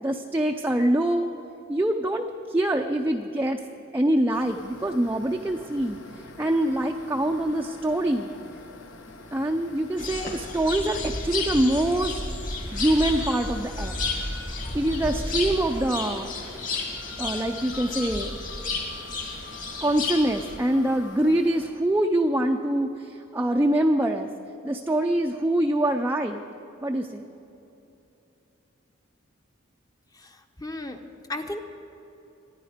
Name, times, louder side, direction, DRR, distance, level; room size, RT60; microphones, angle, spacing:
voice 1, 0.0-1.3 1.7-3.6 3.9-6.0 6.4-8.3 9.3-12.2 12.7-14.0 14.7-16.3 17.2-18.3 19.8-24.3 24.6-26.4 26.8-27.3, right 1 dB, 10° right, 2 dB, 0.5 m, -24 dB
sound 1, 4.3-21.7, left 2 dB, 65° left, 1.1 m, -47 dB
sound 2, 10.0-20.6, left 3 dB, 40° left, 2.3 m, -32 dB
sound 3, 12.7-21.2, left 2 dB, 90° left, 2.8 m, -46 dB
voice 2, 30.1-31.0 31.3-31.6, left 1 dB, 20° left, 6 dB, 0.8 m, -35 dB
26.0 x 10.0 x 5.1 m, 2.9 s
head